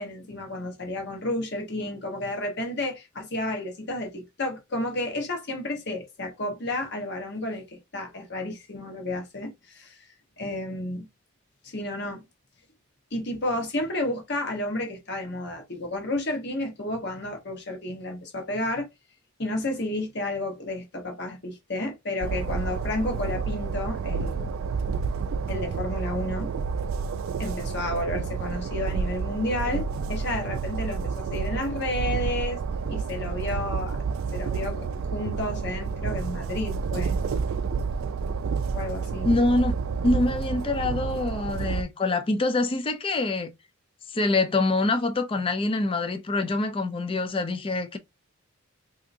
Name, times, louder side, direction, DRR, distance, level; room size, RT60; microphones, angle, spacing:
voice 1, 0.0-10.0 10.4-11.1 11.6-12.2 13.1-18.9 19.4-24.5 25.5-26.5 27.4-32.6 32.9-34.0 34.3-37.2 38.7-39.3, left 1 dB, 50° left, 1.1 m, -31 dB
Train, 22.2-41.8, right 5 dB, 60° right, 0.3 m, -29 dB
voice 2, 39.2-39.7 40.0-43.5 44.1-48.0, left 2 dB, 25° left, 0.4 m, -25 dB
3.6 x 2.7 x 2.6 m
head